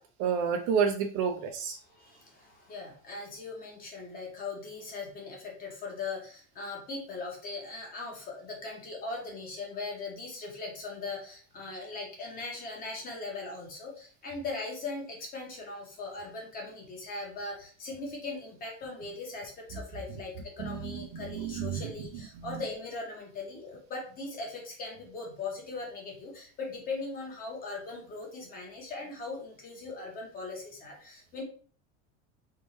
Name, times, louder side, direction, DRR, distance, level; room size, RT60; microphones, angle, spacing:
voice 1, 0.2-1.8 21.1-21.8, right 6 dB, 40° right, 4 dB, 0.5 m, -29 dB
voice 2, 1.8-31.4, left 3 dB, 25° left, 0 dB, 1.2 m, -39 dB
4.1 x 3.6 x 2.9 m, 0.43 s
cardioid pair, 170°, 35 cm